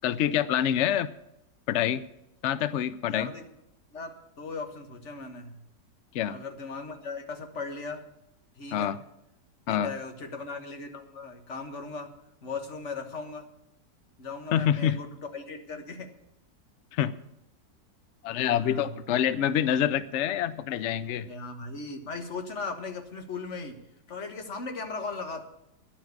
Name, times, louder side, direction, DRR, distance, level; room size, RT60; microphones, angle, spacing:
voice 1, 0.0-1.1 1.7-2.0 2.4-3.3 6.1-6.4 8.7-9.0 9.7-9.9 14.5-15.0 16.9-17.1 18.2-21.3, left 10 dB, 90° left, 15 dB, 0.6 m, -26 dB
voice 2, 3.1-3.4 3.9-5.6 6.3-8.1 8.6-9.0 9.7-12.1 12.4-13.5 14.2-16.1 18.6-18.9 21.2-23.8 24.1-25.4, left 4 dB, 45° left, 6 dB, 1.6 m, -38 dB
10.5 x 7.4 x 9.4 m, 0.81 s
omnidirectional pair, 1.9 m